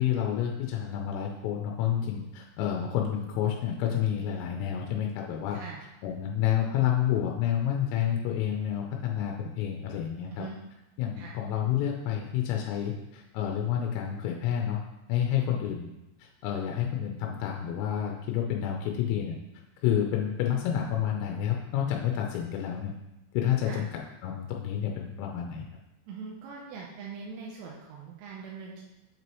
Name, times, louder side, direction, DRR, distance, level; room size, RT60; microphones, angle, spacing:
voice 1, 0.0-5.6 6.0-10.5 11.0-14.8 15.1-15.9 16.2-19.4 19.8-22.9 23.3-25.6, left 10 dB, 90° left, 1 dB, 3.3 m, -29 dB
voice 2, 26.1-28.8, right 5 dB, 80° right, -3 dB, 3.3 m, -42 dB
8.1 x 6.1 x 3.0 m, 0.95 s
omnidirectional pair, 5.7 m